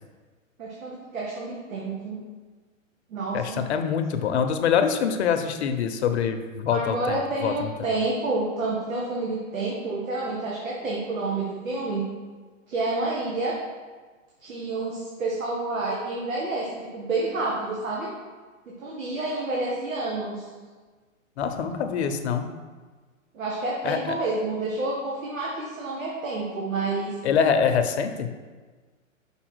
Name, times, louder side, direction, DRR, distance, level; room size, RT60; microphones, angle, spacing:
voice 1, 0.6-2.2 3.1-3.7 6.7-12.1 12.7-13.5 14.4-18.1 18.8-20.5 23.3-27.1, right 2 dB, 80° right, -4 dB, 1.7 m, -29 dB
voice 2, 3.3-7.7 21.4-22.5 23.8-24.0 27.2-28.3, left 7 dB, 55° left, 8 dB, 0.8 m, -24 dB
5.7 x 4.9 x 6.2 m, 1.4 s
hypercardioid pair, 140°, 40 cm